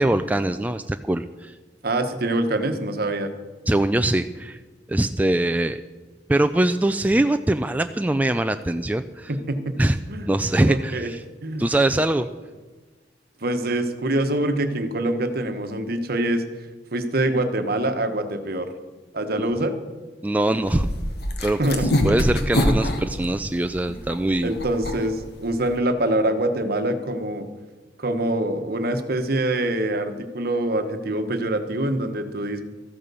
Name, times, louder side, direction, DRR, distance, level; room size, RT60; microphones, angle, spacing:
voice 1, 0.0-1.5 3.7-4.6 4.9-5.8 6.3-9.3 9.8-10.0 10.3-11.2 11.6-12.3 20.2-20.9 21.4-21.6 22.0-24.5, right 1 dB, 10° right, 8 dB, 0.3 m, -22 dB
voice 2, 1.8-3.3 9.3-9.8 10.1-10.3 10.7-11.1 11.4-11.7 13.4-16.4 16.9-18.7 19.1-19.7 21.6-21.9 22.1-22.4 24.4-27.5 28.0-32.6, right 1 dB, 55° right, 8 dB, 1.2 m, -25 dB
sound 1, 20.6-25.8, equal, 60° left, 1.4 m, -25 dB
14.0 x 8.8 x 6.9 m, 1.3 s
head